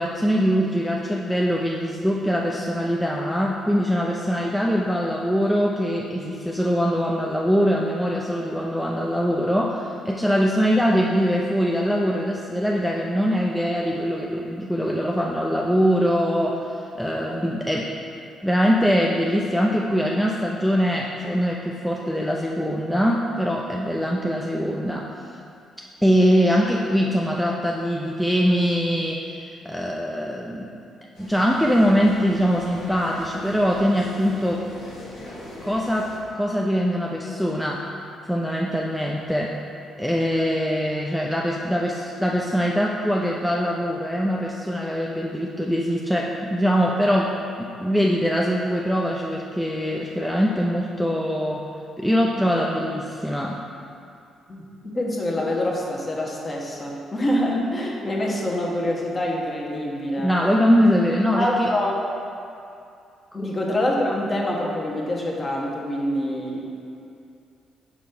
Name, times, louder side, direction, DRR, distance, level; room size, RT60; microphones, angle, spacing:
voice 1, 0.0-17.9 18.4-25.1 26.0-30.7 31.2-34.7 35.6-37.9 38.2-39.6 40.0-51.7 52.0-53.6 60.2-61.7 63.4-63.5, equal, ahead, -2 dB, 0.4 m, -22 dB
sound 1, 31.1-36.2, left 1 dB, 80° left, 1.6 m, -41 dB
voice 2, 54.5-60.3 60.8-60.9 61.4-62.0 63.3-66.7, left 1 dB, 30° left, -2 dB, 1.1 m, -26 dB
5.0 x 4.5 x 5.3 m, 2.5 s
cardioid pair, 90°, 0 cm